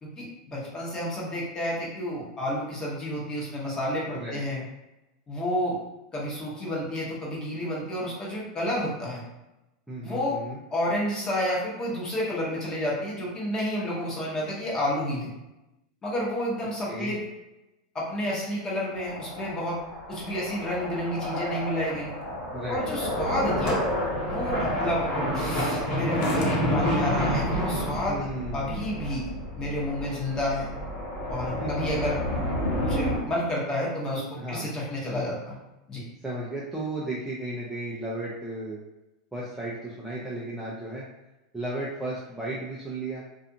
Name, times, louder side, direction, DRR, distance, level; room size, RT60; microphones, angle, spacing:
voice 1, 0.0-4.6 5.3-5.8 6.1-9.2 10.0-10.4 10.7-15.3 16.0-17.2 17.9-19.8 20.1-22.1 22.7-23.8 24.2-25.1 25.3-28.3 28.5-29.3 29.6-30.7 31.3-32.2 32.8-34.2 34.5-35.6 35.9-36.0, left 1 dB, 20° left, -5 dB, 0.9 m, -30 dB
voice 2, 9.9-10.6 16.9-17.2 22.5-23.3 28.1-29.2 31.6-31.9 34.4-34.7 36.2-38.8 39.3-41.0 41.5-43.2, right 1 dB, 5° right, -6 dB, 0.4 m, -34 dB
sound 1, 19.0-33.2, equal, 35° left, 1.4 m, -29 dB
sound 2, 22.2-22.3 23.6-23.9 26.2-26.6, left 3 dB, 55° left, 0.5 m, -38 dB
2.4 x 2.4 x 2.6 m, 0.97 s
supercardioid pair, 140°, 3 cm